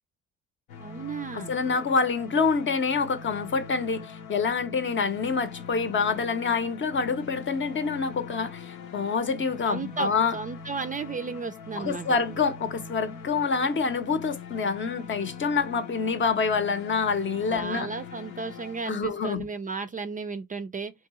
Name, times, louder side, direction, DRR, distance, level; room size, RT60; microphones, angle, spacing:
sound 1, 0.7-19.6, left 6 dB, 85° left, 0.8 m, -43 dB
voice 1, 0.8-1.5 9.6-12.2 17.5-20.9, right 4 dB, 30° right, 0.4 m, -34 dB
voice 2, 1.3-10.4 11.8-17.9 18.9-19.5, left 5 dB, 40° left, 0.7 m, -27 dB
3.5 x 2.7 x 3.0 m
cardioid pair, 90°, 30 cm